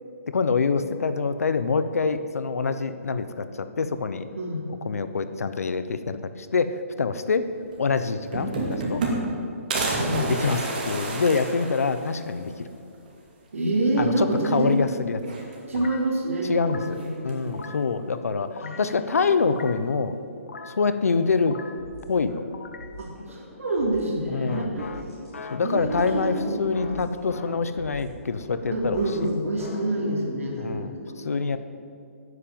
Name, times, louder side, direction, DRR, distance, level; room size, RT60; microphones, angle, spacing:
voice 1, 0.3-4.3 4.8-7.5 7.8-9.0 10.2-12.7 14.0-15.2 15.8-15.9 16.4-17.0 17.2-18.5 18.8-20.2 20.7-21.6 22.1-22.4 24.3-24.8 25.5-29.0 30.6-31.6, left 4 dB, 80° left, 11 dB, 1.0 m, -25 dB
sound 1, 7.7-7.8 8.1-9.4 9.7-12.3 12.7-12.8 13.1-13.2 14.3-14.8 15.2-15.9 16.9-17.5, right 2 dB, 35° right, 2.4 m, -29 dB
voice 2, 9.9-10.3 13.5-14.8 15.7-17.7 18.6-19.2 23.0-24.9 25.6-26.6 26.9-27.0 28.7-31.5, right 2 dB, 65° right, -1 dB, 3.2 m, -27 dB
sound 2, 15.7-16.1 16.5-17.0 17.4-17.9 18.4-18.9 19.4-19.9 20.4-20.8 21.3-21.8 22.3-23.0 24.5-27.7 29.0-30.9, left 4 dB, 60° left, 1.3 m, -41 dB
sound 3, 21.8-29.8, equal, 5° left, 4.3 m, -45 dB
11.5 x 9.7 x 9.0 m, 2.4 s
hypercardioid pair, 175°, 8 cm